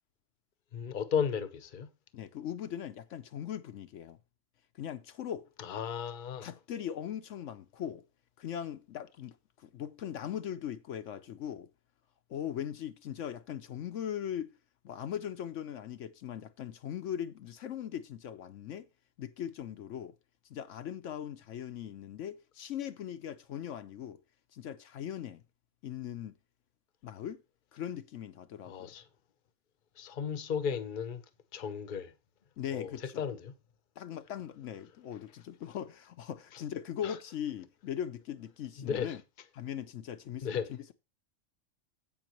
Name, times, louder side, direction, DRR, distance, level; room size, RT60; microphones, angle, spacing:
voice 1, 0.7-1.9 5.6-6.5 28.7-29.0 30.0-31.2 31.5-32.1 32.7-32.9 33.2-33.5 37.0-37.1 38.8-39.2 40.4-40.7, left 7 dB, 45° left, 0.9 m, -34 dB
voice 2, 2.1-4.2 4.8-5.5 6.4-8.0 8.4-11.7 12.3-14.5 14.8-18.9 19.2-20.1 20.5-24.2 24.5-25.4 25.8-26.3 27.0-27.4 27.7-28.9 32.6-33.3 34.0-39.2 39.5-40.9, left 9 dB, 75° left, 1.0 m, -40 dB
16.0 x 5.7 x 3.0 m
omnidirectional pair, 1.3 m